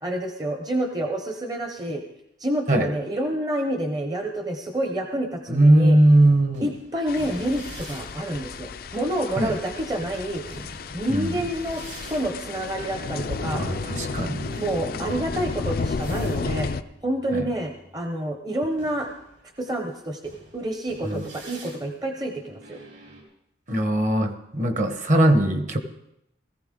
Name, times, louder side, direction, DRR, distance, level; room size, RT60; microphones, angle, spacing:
voice 1, 0.0-2.0 2.4-6.0 6.6-10.4 10.9-11.8 12.1-13.6 14.6-16.7 17.0-19.1 19.6-22.8, right 1 dB, 20° right, 4 dB, 0.8 m, -28 dB
voice 2, 5.5-6.7 9.4-9.6 11.1-11.4 13.6-14.5 17.3-17.5 21.0-21.3 23.7-25.8, right 1 dB, 40° right, 8 dB, 1.1 m, -20 dB
sound 1, 6.0-18.0 18.7-23.2, right 1 dB, 65° right, 3.9 m, -44 dB
sound 2, 7.1-16.8, left 4 dB, 50° left, 0.4 m, -33 dB
17.0 x 14.5 x 3.8 m, 0.80 s
head